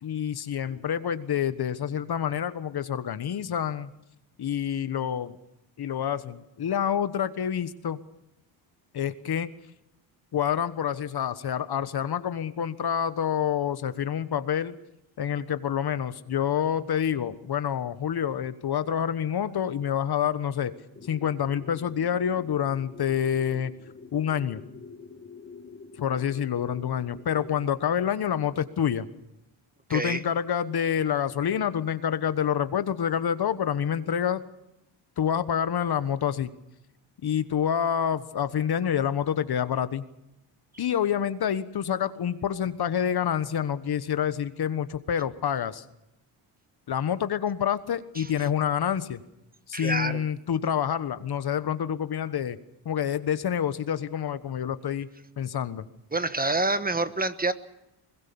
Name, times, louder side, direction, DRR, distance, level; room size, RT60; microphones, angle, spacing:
voice 1, 0.0-3.9 4.4-5.4 5.8-8.0 8.9-9.5 10.3-14.7 15.2-20.7 21.0-23.7 24.1-24.6 26.0-29.1 29.9-34.4 35.2-36.5 37.2-40.0 40.8-45.8 46.9-49.2 49.7-52.6 52.8-55.1 55.4-55.8, left 9 dB, 55° left, 13 dB, 1.4 m, -27 dB
sound 1, 20.9-27.7, left 5 dB, 30° left, 1.6 m, -47 dB
voice 2, 29.9-30.2 48.2-48.3 49.7-50.2 56.1-57.5, right 2 dB, 20° right, 12 dB, 1.3 m, -27 dB
22.5 x 20.5 x 7.1 m, 0.87 s
cardioid pair, 85°, 46 cm